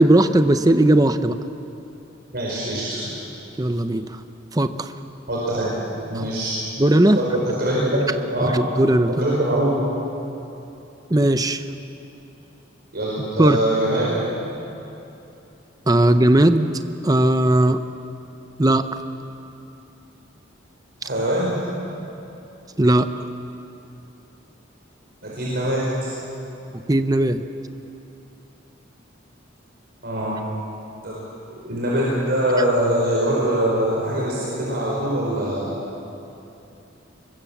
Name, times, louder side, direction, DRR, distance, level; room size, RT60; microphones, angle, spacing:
voice 1, 0.0-1.4 3.6-4.2 4.5-4.9 6.1-6.3 6.8-7.2 8.4-9.4 11.1-11.6 13.4-13.6 15.9-17.8 18.6-19.0 22.8-23.3 26.9-27.4, right 1 dB, 20° right, 9 dB, 0.7 m, -18 dB
voice 2, 2.3-3.1 5.3-6.6 7.1-8.0 8.3-8.6 9.2-9.7 12.9-14.1 21.0-21.6 25.2-26.1 30.0-30.3 31.0-31.2 31.5-35.8, right 1 dB, 55° right, -5 dB, 5.0 m, -23 dB
25.0 x 22.5 x 7.3 m, 2.9 s
head